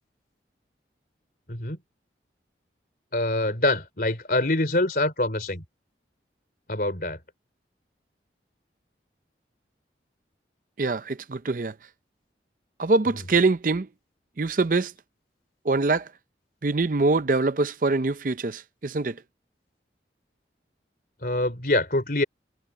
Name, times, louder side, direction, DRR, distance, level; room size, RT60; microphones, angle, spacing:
voice 1, 1.5-1.8 3.1-5.6 6.7-7.2 21.2-22.2, left 2 dB, 50° left, 3.7 m, -25 dB
voice 2, 10.8-11.7 12.8-13.9 14.4-14.9 15.6-16.1 16.6-19.2, right 3 dB, 45° right, 0.6 m, -24 dB
head